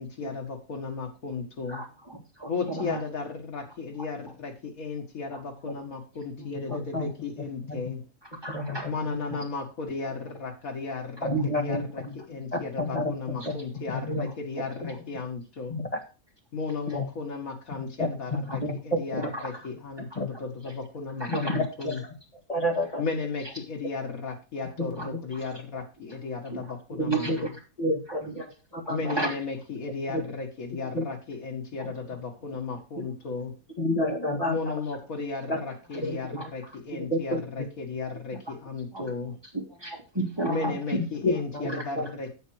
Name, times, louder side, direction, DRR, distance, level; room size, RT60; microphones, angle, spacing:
voice 1, 0.0-1.9 2.5-8.1 8.9-15.8 16.5-22.0 23.0-27.5 28.9-33.6 34.5-39.3 40.5-42.3, left 4 dB, 80° left, 1 dB, 2.3 m, -35 dB
voice 2, 1.7-3.0 5.3-5.4 5.6-5.7 6.4-6.8 8.4-8.9 18.5-18.6 19.3-19.4 20.6-20.7 21.2-21.6 25.0-25.5 26.5-26.6 27.1-27.3 28.1-28.3 28.8-29.3 31.8-31.9 36.3-36.8 38.9-39.1 39.5-41.0 41.6-41.8, right 1 dB, 15° right, -1 dB, 3.0 m, -35 dB
voice 3, 6.4-7.1 7.7-7.8 8.5-9.1 11.2-12.1 12.5-13.1 13.4-13.5 13.9-14.3 14.8-14.9 15.7-15.9 16.9-17.0 17.7-19.3 20.2-20.3 21.3-22.0 22.5-23.0 24.8-24.9 26.9-27.4 27.8-28.5 28.7-29.1 30.1-30.2 30.9-31.0 33.8-34.7 35.5-35.6 35.9-36.2 37.0-37.7 40.9-42.1, left 1 dB, 25° left, 2 dB, 2.1 m, -29 dB
8.9 x 8.0 x 4.8 m, 0.31 s
omnidirectional pair, 1.4 m